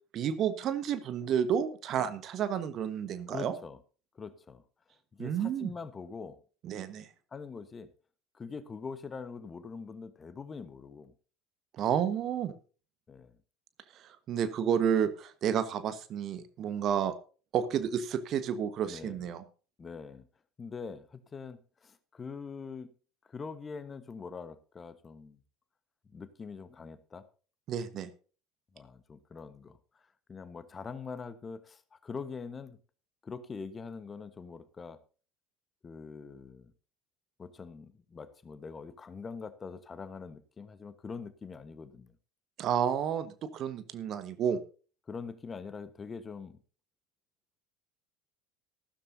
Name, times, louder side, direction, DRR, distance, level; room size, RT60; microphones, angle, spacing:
voice 1, 0.1-3.5 5.2-5.7 6.6-7.1 11.7-12.5 13.9-17.1 17.5-19.4 27.7-28.1 42.6-44.6, right 8 dB, 45° right, 1.3 m, -31 dB
voice 2, 3.3-3.8 4.1-4.6 5.1-6.4 7.3-7.9 8.3-11.1 13.1-13.3 18.9-19.3 19.8-20.3 20.6-22.9 23.3-25.4 26.1-27.2 28.7-32.8 33.2-35.0 35.8-36.7 37.4-42.1 45.1-46.6, left 5 dB, 25° left, 1.2 m, -43 dB
14.5 x 13.0 x 2.7 m
figure-of-eight pair, 70°, 0 cm